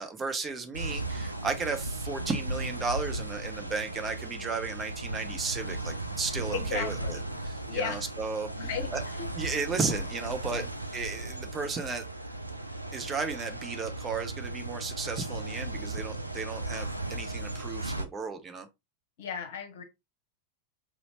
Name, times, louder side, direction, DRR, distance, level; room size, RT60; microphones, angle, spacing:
voice 1, 0.0-7.2 7.5-8.5 8.9-9.0 9.4-10.6 10.9-12.0 12.9-18.7, right 4 dB, 20° right, 0.6 m, -34 dB
sound 1, 0.7-18.0, right 2 dB, 85° right, 0.4 m, -36 dB
voice 2, 6.5-7.2 7.7-8.1 8.6-9.3 10.5-10.7 19.2-19.8, left 7 dB, 55° left, 0.9 m, -35 dB
4.2 x 2.7 x 2.9 m
figure-of-eight pair, 90°, 0 cm